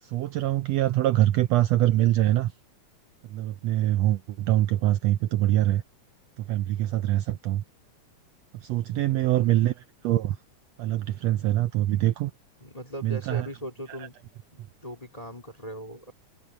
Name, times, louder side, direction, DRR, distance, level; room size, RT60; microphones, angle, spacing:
voice 1, 0.0-2.5 3.2-5.8 6.4-7.6 8.5-10.4 10.8-12.3 13.0-13.5 13.9-14.1, right 14 dB, 75° right, 1.6 m, -24 dB
voice 2, 8.9-9.3 12.6-14.1 14.5-16.1, equal, 15° left, 1.9 m, -39 dB
omnidirectional pair, 3.5 m